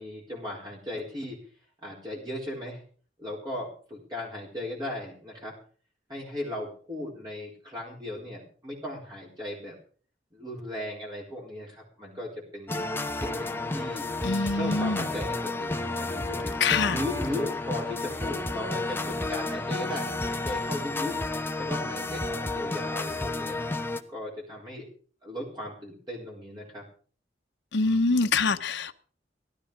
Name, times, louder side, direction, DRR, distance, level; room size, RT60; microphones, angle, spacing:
voice 1, 0.0-1.4 1.8-2.8 3.2-5.5 6.1-9.8 10.3-12.9 13.2-14.0 14.5-16.5 16.8-21.2 21.6-23.8 24.1-24.9 25.2-26.8 27.8-28.7, left 1 dB, 25° right, 4.4 m, -37 dB
sound 1, 12.7-24.0, left 2 dB, 10° left, 0.9 m, -31 dB
voice 2, 14.2-15.0 16.6-17.0 27.7-28.9, left 4 dB, 90° left, 0.9 m, -25 dB
17.0 x 13.0 x 5.1 m
head